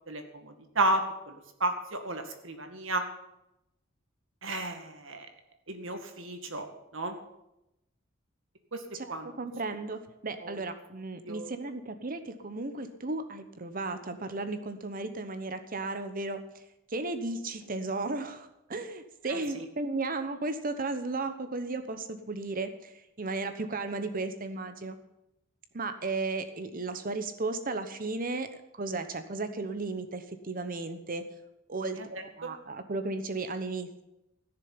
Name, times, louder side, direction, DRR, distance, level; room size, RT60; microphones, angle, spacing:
voice 1, 0.1-1.3 1.6-3.0 4.4-5.3 5.7-6.7 6.9-7.2 8.7-8.8 9.1-9.3 10.4-10.6 11.2-11.5 19.3-19.7, right 2 dB, 75° right, 6 dB, 2.1 m, -32 dB
voice 2, 8.9-16.6 16.9-25.0 25.7-28.5 28.7-31.2 31.7-34.0, right 3 dB, 45° right, 9 dB, 1.1 m, -35 dB
15.0 x 6.9 x 9.7 m, 0.88 s
head